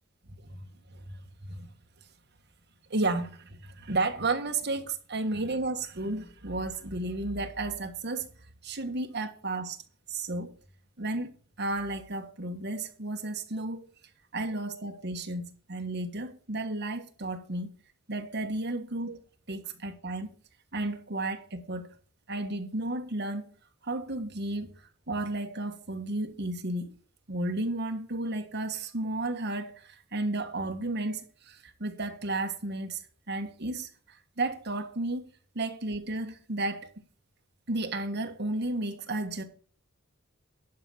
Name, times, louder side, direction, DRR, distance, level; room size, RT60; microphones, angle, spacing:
voice 1, 0.9-1.7 2.9-8.3 8.6-9.8 10.1-10.5 11.0-13.9 14.3-17.7 18.1-19.2 19.5-20.3 20.7-21.9 22.3-23.5 23.8-24.7 25.1-26.9 27.3-33.0 33.3-33.9 34.4-35.3 35.5-36.9 37.7-39.4, right 2 dB, 60° right, 1.5 m, -33 dB
11.5 x 5.5 x 6.1 m
head